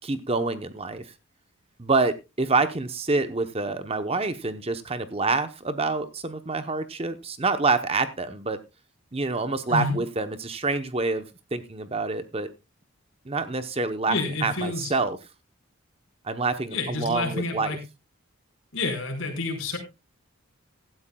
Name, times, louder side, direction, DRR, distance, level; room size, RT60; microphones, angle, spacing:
voice 1, 0.0-1.1 1.8-8.6 9.1-11.2 11.5-12.5 13.2-15.2 16.2-17.8, right 3 dB, 25° right, 10 dB, 0.8 m, -27 dB
voice 2, 14.1-14.9 16.7-17.8 18.7-19.8, left 3 dB, 60° left, 2 dB, 4.8 m, -29 dB
16.5 x 12.5 x 2.3 m, 0.26 s
head